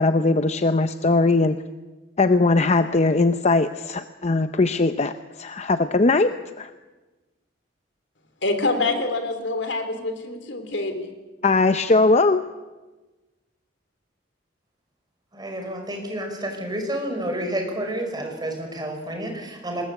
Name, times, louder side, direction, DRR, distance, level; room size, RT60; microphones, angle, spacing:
voice 1, 0.0-1.6 2.2-6.7 11.4-12.4, left 3 dB, 35° left, 10 dB, 0.7 m, -20 dB
voice 2, 8.4-11.1, left 2 dB, 70° left, 8 dB, 3.5 m, -26 dB
voice 3, 15.3-19.9, right 1 dB, 25° right, 3 dB, 5.4 m, -30 dB
25.0 x 21.5 x 8.2 m, 1.2 s
head